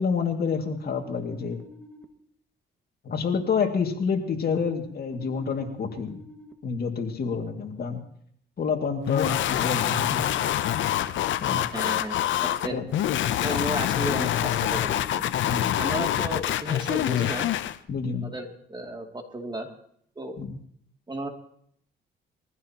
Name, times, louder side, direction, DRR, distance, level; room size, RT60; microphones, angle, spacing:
voice 1, 0.0-1.6 3.0-6.2 6.6-8.0 8.6-10.2 11.4-11.7 12.6-12.8 15.4-15.8 17.9-18.3 20.4-20.6, left 5 dB, 50° left, 3 dB, 2.3 m, -28 dB
sound 1, 0.7-2.0 5.1-6.5 9.6-11.0 14.1-15.5, left 2 dB, 5° left, 1.9 m, -48 dB
sound 2, 9.1-17.8, left 12 dB, 70° left, 0.7 m, -26 dB
voice 2, 11.7-12.2 12.4-12.8 13.4-15.2 15.8-17.5 18.2-19.7 20.2-20.4 21.1-21.3, right 1 dB, 20° right, 3 dB, 2.6 m, -33 dB
22.5 x 15.0 x 3.0 m, 0.66 s
cardioid pair, 90°, 20 cm